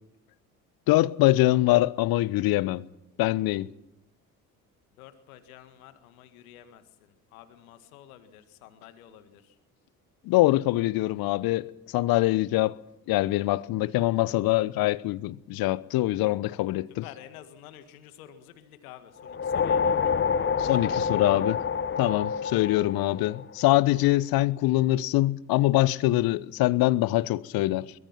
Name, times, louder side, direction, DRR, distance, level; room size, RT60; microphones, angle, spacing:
voice 1, 0.9-2.8 3.2-3.7 10.2-12.8 13.1-17.0 20.6-21.6 22.0-27.9, left 17 dB, 55° left, 1.0 m, -24 dB
voice 2, 5.0-9.6 17.0-20.1 20.6-21.2, left 11 dB, 70° left, 2.0 m, -50 dB
sound 1, 19.2-23.8, left 6 dB, 25° left, 1.0 m, -27 dB
24.0 x 22.0 x 5.9 m
figure-of-eight pair, 55°, 44 cm